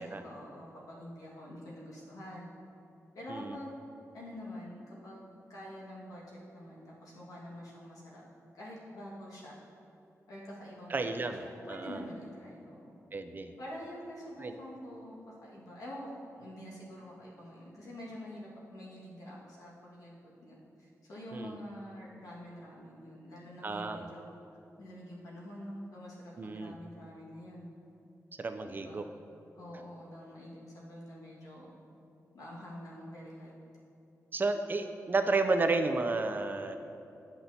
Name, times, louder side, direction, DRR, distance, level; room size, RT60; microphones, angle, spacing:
voice 1, 0.0-2.5 3.1-3.7 4.1-5.2 5.5-8.2 8.5-9.6 10.3-12.9 13.6-24.2 24.8-26.1 26.4-27.7 28.8-29.0 29.6-31.7 32.3-33.5, equal, 80° left, -5 dB, 1.6 m, -46 dB
voice 2, 10.9-11.4 11.7-12.0 13.1-13.5 14.4-14.5 21.3-21.6 23.6-24.3 26.4-26.8 28.4-29.1 34.3-36.8, right 3 dB, 35° right, 7 dB, 0.4 m, -32 dB
10.0 x 6.0 x 2.7 m, 2.8 s
wide cardioid pair, 150°, 6 cm